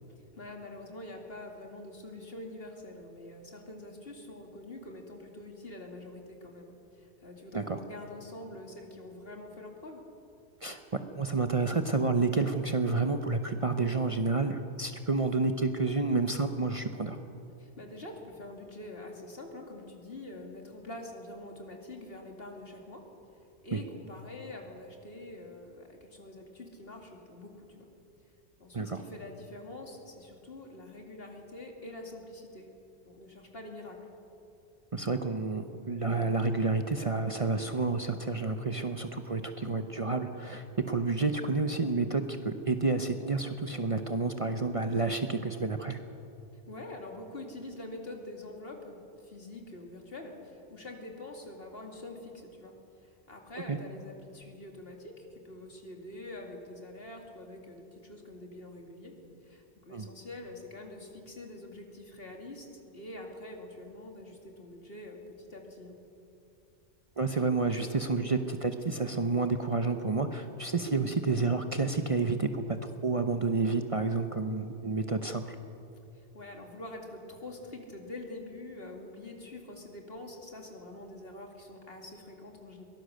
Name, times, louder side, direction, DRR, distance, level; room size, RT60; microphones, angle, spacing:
voice 1, 0.3-10.0 17.6-23.0 23.6-27.8 28.6-32.7 33.1-34.1 46.7-52.7 53.0-59.1 59.4-62.7 62.9-66.0 76.1-82.8, left 2 dB, 60° left, 1 dB, 2.8 m, -45 dB
voice 2, 11.1-17.2 23.7-23.8 28.7-29.0 34.9-46.0 53.7-53.8 59.9-60.1 67.2-75.6, right 3 dB, 35° right, 7 dB, 0.8 m, -30 dB
23.0 x 18.0 x 6.6 m, 2.8 s
omnidirectional pair, 1.1 m